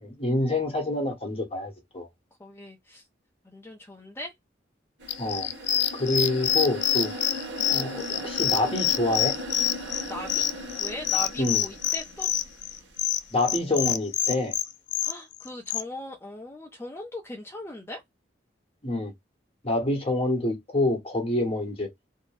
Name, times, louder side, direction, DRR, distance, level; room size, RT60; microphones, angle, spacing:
voice 1, 0.0-2.1 5.2-5.5 5.9-7.1 7.7-9.3 11.4-11.6 13.3-14.5 18.8-19.1 19.6-21.9, left 2 dB, 35° left, 0.9 m, -27 dB
voice 2, 2.4-3.0 3.4-4.3 10.1-10.5 10.8-12.3 15.0-18.0, left 1 dB, 15° left, 0.5 m, -39 dB
sound 1, 5.0-13.0, equal, 80° right, 0.9 m, -38 dB
sound 2, 5.1-15.8, left 11 dB, 70° left, 0.3 m, -26 dB
2.6 x 2.1 x 3.1 m
head